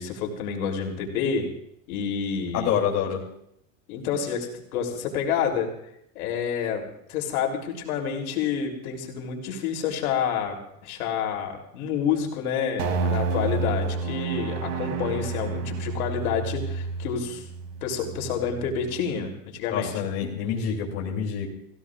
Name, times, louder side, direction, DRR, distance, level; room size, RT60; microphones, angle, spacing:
voice 1, 0.0-1.5 1.9-2.7 3.9-5.7 6.2-17.4 17.8-19.9, left 7 dB, 75° left, 1 dB, 3.4 m, -29 dB
voice 2, 2.5-3.2 19.7-21.5, left 8 dB, 35° left, -2 dB, 3.1 m, -27 dB
sound 1, 12.8-19.3, right 4 dB, 65° right, 3.1 m, -30 dB
30.0 x 16.5 x 2.5 m, 0.75 s
supercardioid pair, 170°, 44 cm